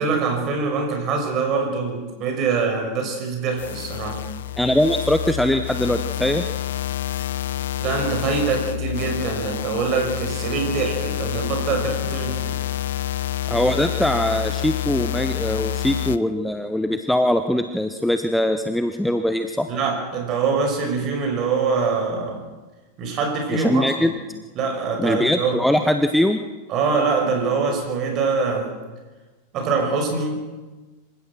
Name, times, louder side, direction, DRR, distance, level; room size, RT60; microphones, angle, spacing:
voice 1, 0.0-4.2 7.8-12.6 19.7-22.4 23.0-24.2 24.5-25.6 26.7-28.7 29.5-30.4, right 4 dB, 35° right, 3 dB, 6.1 m, -24 dB
sound 1, 3.6-16.2, left 12 dB, 60° left, 0.7 m, -28 dB
voice 2, 4.6-6.4 13.5-19.7 23.5-24.1 25.0-26.4, left 1 dB, ahead, 8 dB, 0.9 m, -21 dB
26.5 x 16.0 x 6.2 m, 1.2 s
figure-of-eight pair, 90°, 0 cm